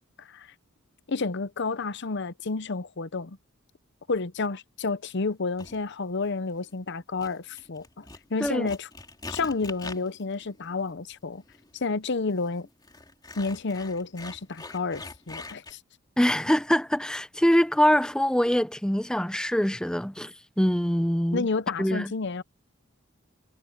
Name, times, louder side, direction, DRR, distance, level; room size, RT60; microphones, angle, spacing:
voice 1, 0.2-0.5 1.1-3.4 4.1-8.9 9.3-11.4 11.7-12.7 13.4-15.8 21.3-22.4, left 4 dB, 60° left, 0.8 m, -30 dB
sound 1, 5.6-5.8 6.5-6.9 7.2-15.7, left 3 dB, 20° left, 2.7 m, -44 dB
voice 2, 16.2-21.5 21.8-22.1, equal, 5° left, 0.6 m, -24 dB
head